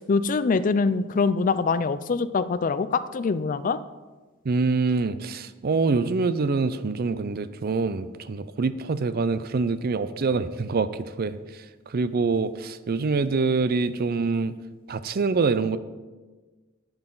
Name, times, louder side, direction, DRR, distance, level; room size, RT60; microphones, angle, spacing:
voice 1, 0.0-3.8, left 4 dB, 40° left, 14 dB, 0.4 m, -24 dB
voice 2, 4.5-10.9 11.2-11.4 11.9-14.5 14.9-15.8, right 4 dB, 45° right, 14 dB, 0.4 m, -25 dB
11.5 x 7.9 x 3.9 m, 1.3 s
head